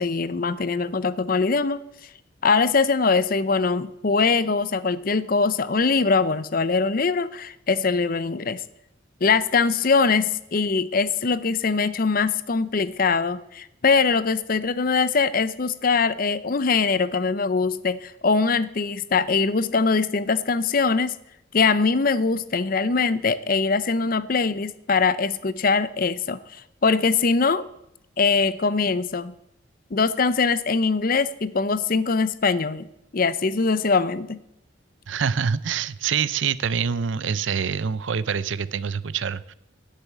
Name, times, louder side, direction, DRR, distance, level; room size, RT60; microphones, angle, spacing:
voice 1, 0.0-1.8 2.4-8.6 9.2-21.1 21.5-27.6 28.2-29.3 29.9-32.9 33.1-34.4, left 4 dB, 45° left, 16 dB, 0.6 m, -22 dB
voice 2, 35.1-39.5, right 6 dB, 70° right, 18 dB, 0.5 m, -25 dB
12.0 x 6.8 x 9.0 m, 0.84 s
head